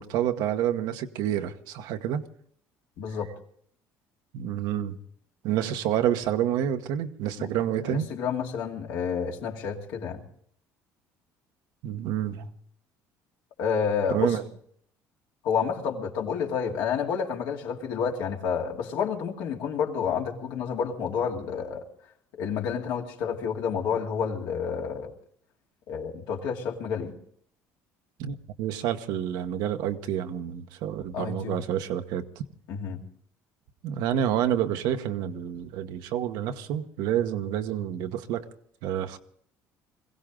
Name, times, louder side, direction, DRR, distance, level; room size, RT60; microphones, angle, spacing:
voice 1, 0.0-2.2 4.3-5.0 5.4-8.1 11.8-12.5 14.1-14.4 28.2-32.4 33.8-38.5 38.8-39.2, right 10 dB, 80° right, 1.1 m, -28 dB
voice 2, 3.0-3.3 7.4-7.5 7.9-10.2 13.6-14.4 15.4-21.8 22.4-25.1 25.9-27.1 31.1-31.6 32.7-33.0, left 6 dB, 80° left, 2.4 m, -29 dB
22.0 x 16.0 x 3.8 m
supercardioid pair, 90°, 7 cm